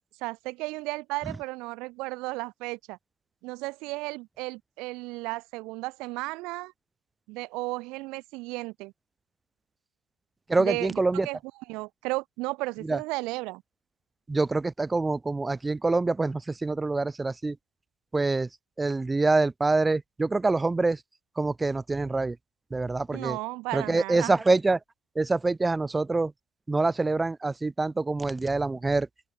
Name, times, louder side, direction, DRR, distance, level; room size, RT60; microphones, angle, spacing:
voice 1, 0.0-3.0 3.4-6.7 7.3-8.9 10.6-11.4 11.7-13.6 23.1-24.3, right 23 dB, 65° right, 2.9 m, -34 dB
voice 2, 10.5-11.3 12.8-13.0 14.3-17.6 18.1-18.5 18.8-21.0 21.4-22.4 22.7-23.4 23.7-24.8 25.2-26.3 26.7-29.1, right 3 dB, 10° right, 4.3 m, -25 dB
open air
supercardioid pair, 125°, 0 cm